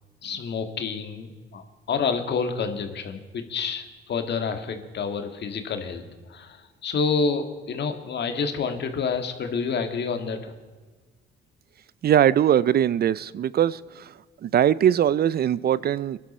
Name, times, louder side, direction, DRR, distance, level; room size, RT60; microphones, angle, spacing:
voice 1, 0.2-6.0 6.3-10.5, left 5 dB, 60° left, 7 dB, 1.9 m, -28 dB
voice 2, 12.0-13.8 14.4-16.2, right 10 dB, 50° right, 19 dB, 0.5 m, -21 dB
22.0 x 11.5 x 4.3 m, 1.4 s
cardioid pair, 90°, 20 cm